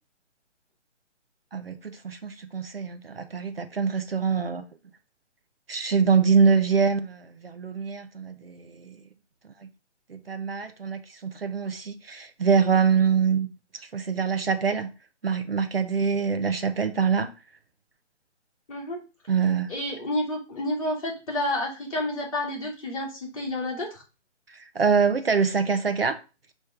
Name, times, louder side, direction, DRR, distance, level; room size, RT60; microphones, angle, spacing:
voice 1, 1.5-4.6 5.7-9.0 10.1-13.5 13.9-14.9 15.2-17.3 19.3-19.7 24.5-26.2, right 6 dB, 55° right, 0.7 m, -24 dB
voice 2, 18.7-19.0 19.7-24.0, left 1 dB, 30° left, 2.8 m, -30 dB
6.6 x 3.1 x 5.7 m
hypercardioid pair, 180°, 36 cm